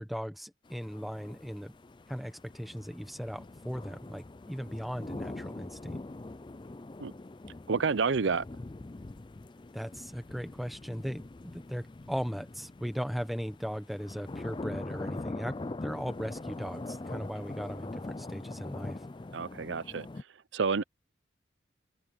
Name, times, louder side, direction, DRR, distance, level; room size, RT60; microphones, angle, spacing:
voice 1, 0.0-1.7 2.1-6.0 9.7-11.3 11.5-19.0, equal, ahead, 1.0 m, -38 dB
sound 1, 0.7-20.2, left 2 dB, 25° left, 0.4 m, -43 dB
voice 2, 7.7-8.4 19.3-20.1 20.5-20.8, right 5 dB, 75° right, 0.6 m, -29 dB
head